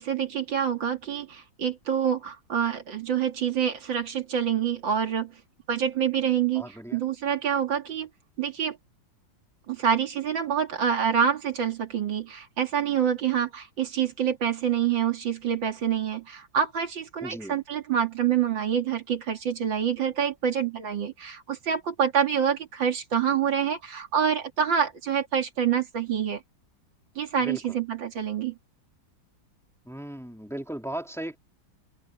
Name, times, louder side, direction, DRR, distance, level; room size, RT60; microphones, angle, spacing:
voice 1, 0.0-5.4 5.7-8.1 8.4-8.8 9.7-26.4 27.2-28.6, right 8 dB, 85° right, 2.9 m, -26 dB
voice 2, 6.5-7.0 17.2-17.6 27.4-27.8 29.9-31.4, right 1 dB, ahead, 2.8 m, -37 dB
omnidirectional pair, 2.0 m